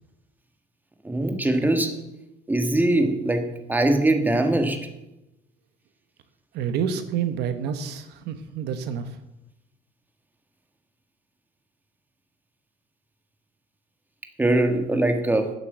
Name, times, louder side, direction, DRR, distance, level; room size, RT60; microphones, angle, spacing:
voice 1, 1.0-2.0 2.5-4.9 14.4-15.5, right 1 dB, 10° right, 5 dB, 1.6 m, -22 dB
voice 2, 6.5-9.2, right 7 dB, 80° right, 10 dB, 1.1 m, -28 dB
9.0 x 7.6 x 7.9 m, 0.92 s
cardioid pair, 110°, 17 cm